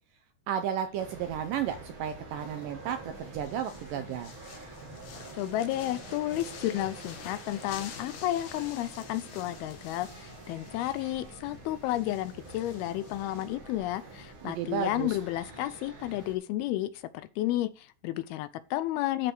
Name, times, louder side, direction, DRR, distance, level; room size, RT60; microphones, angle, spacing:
voice 1, 0.5-4.3 14.4-15.2, right 9 dB, 80° right, 2.0 m, -33 dB
sound 1, 0.8-13.6, left 6 dB, 60° left, 2.7 m, -49 dB
sound 2, 1.0-16.3, right 3 dB, 40° right, 2.2 m, -47 dB
voice 2, 5.4-19.3, left 14 dB, 80° left, 2.3 m, -32 dB
sound 3, 5.7-11.4, right 2 dB, 20° right, 2.1 m, -57 dB
12.5 x 5.1 x 4.6 m
omnidirectional pair, 4.7 m